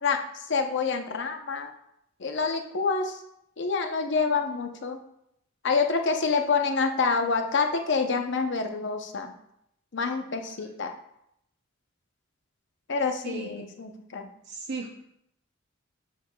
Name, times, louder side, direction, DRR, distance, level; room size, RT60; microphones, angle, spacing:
voice 1, 0.0-1.7 2.2-3.2 3.6-5.0 5.6-9.3 9.9-10.9 12.9-14.3, left 4 dB, 60° left, 5 dB, 0.7 m, -27 dB
voice 2, 14.4-14.9, right 4 dB, 55° right, 1 dB, 0.5 m, -35 dB
7.8 x 6.6 x 2.3 m, 0.77 s
head